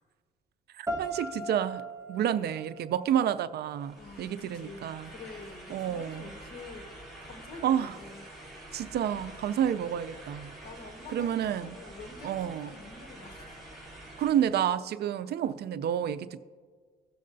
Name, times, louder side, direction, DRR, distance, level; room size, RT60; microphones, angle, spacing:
voice 1, 0.8-1.8 2.1-5.1 5.7-6.3 7.6-7.9 8.7-10.5 11.1-11.7 12.2-12.7 14.2-16.4, right 10 dB, 65° right, 14 dB, 0.4 m, -29 dB
sound 1, 0.9-3.9, right 1 dB, 15° right, 1.3 m, -39 dB
sound 2, 3.7-14.6, right 1 dB, ahead, 3.1 m, -48 dB
voice 2, 3.9-6.9 7.2-8.3 10.6-13.6, left 3 dB, 60° left, 4 dB, 1.4 m, -47 dB
17.0 x 6.5 x 2.6 m, 1.5 s
cardioid pair, 105°, 18 cm